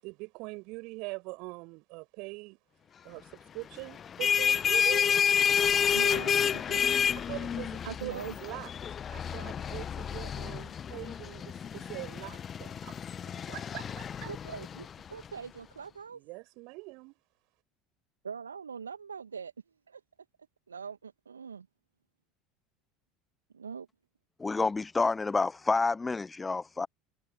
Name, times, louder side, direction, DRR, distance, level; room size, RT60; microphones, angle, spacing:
voice 1, 0.0-2.6 3.0-5.2 7.1-8.7 9.1-13.0 13.3-14.3 16.1-17.2, right 26 dB, 55° right, 7.5 m, -43 dB
sound 1, 3.9-15.3, left 8 dB, 30° left, 1.2 m, -30 dB
voice 2, 5.9-7.0 7.9-8.3 14.3-16.2 18.2-19.5 19.9-20.0 20.7-21.7 23.5-23.9, right 6 dB, 80° right, 2.1 m, -42 dB
voice 3, 24.4-26.9, left 3 dB, 15° left, 0.5 m, -28 dB
figure-of-eight pair, 70°, 0 cm